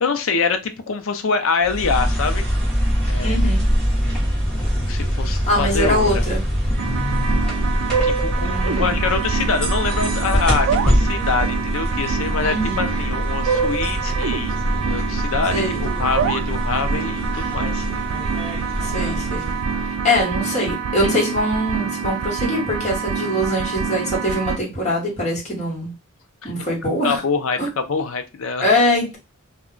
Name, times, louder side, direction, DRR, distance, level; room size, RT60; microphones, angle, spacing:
voice 1, 0.0-2.5 3.1-3.4 4.7-6.2 8.0-17.9 26.4-26.7 27.0-28.7, left 5 dB, 65° left, 0.4 m, -25 dB
sound 1, 1.6-20.1, equal, 5° left, 0.8 m, -23 dB
voice 2, 3.2-3.6 5.5-6.4 8.4-9.0 12.4-12.9 15.5-15.8 18.8-19.5 19.9-25.9 26.4-27.2 28.6-29.2, left 1 dB, 30° left, 1.2 m, -22 dB
sound 2, 6.8-24.6, right 6 dB, 80° right, 0.3 m, -25 dB
2.3 x 2.1 x 3.6 m
head